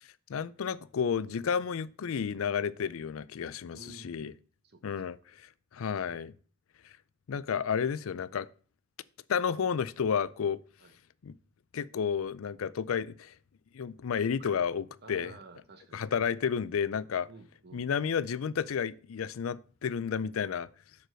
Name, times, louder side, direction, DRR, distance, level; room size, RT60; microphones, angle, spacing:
voice 1, 0.3-4.3 4.8-5.2 5.7-6.3 7.3-8.5 9.3-10.6 11.2-11.3 11.7-13.3 13.7-15.3 15.9-17.3 17.7-20.7, left 7 dB, 85° left, 0.4 m, -31 dB
voice 2, 3.7-4.3 4.6-5.3 10.8-11.0 14.4-14.6 15.0-16.2 17.3-17.9, right 2 dB, 55° right, 1.2 m, -52 dB
6.7 x 4.8 x 6.2 m
head